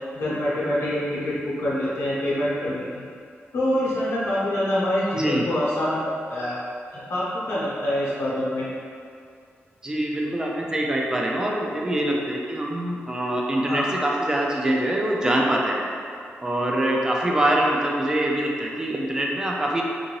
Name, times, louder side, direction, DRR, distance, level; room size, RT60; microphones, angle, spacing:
voice 1, 0.1-2.8 3.5-6.0 6.3-6.6 7.1-8.7 13.7-13.8, left 1 dB, 85° left, -8 dB, 0.8 m, -25 dB
voice 2, 5.2-5.5 9.8-15.8 16.4-19.8, right 1 dB, 15° right, -1 dB, 0.3 m, -24 dB
2.7 x 2.6 x 2.9 m, 2.3 s
wide cardioid pair, 140°, 4 cm